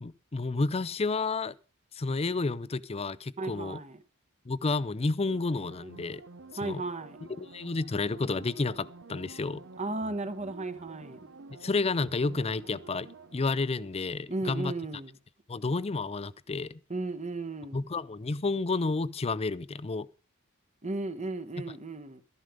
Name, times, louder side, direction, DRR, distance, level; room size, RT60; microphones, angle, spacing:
voice 1, 0.0-1.5 1.9-3.8 4.5-6.2 6.6-6.8 7.2-9.6 11.6-14.7 15.5-16.8 17.7-20.1, left 3 dB, 30° left, 0.5 m, -31 dB
voice 2, 3.4-4.0 6.6-7.2 9.8-11.3 14.3-15.1 16.9-17.8 20.8-22.2, right 2 dB, 35° right, 1.3 m, -35 dB
sound 1, 5.3-14.7 15.0-15.1, right 3 dB, 60° right, 0.8 m, -50 dB
13.0 x 11.0 x 5.1 m
head